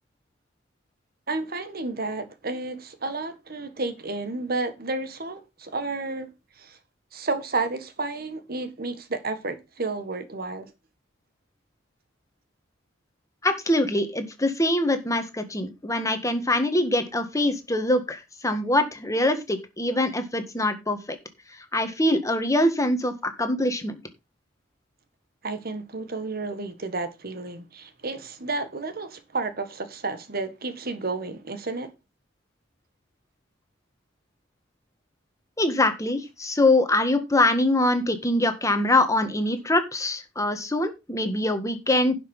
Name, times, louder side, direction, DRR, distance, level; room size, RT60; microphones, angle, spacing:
voice 1, 1.3-6.3 6.6-6.8 7.1-10.7 25.4-31.9, right 3 dB, 55° right, 1.6 m, -31 dB
voice 2, 13.4-21.0 21.7-24.0 35.6-42.1, left 1 dB, 15° left, 1.7 m, -23 dB
11.0 x 6.0 x 5.4 m
head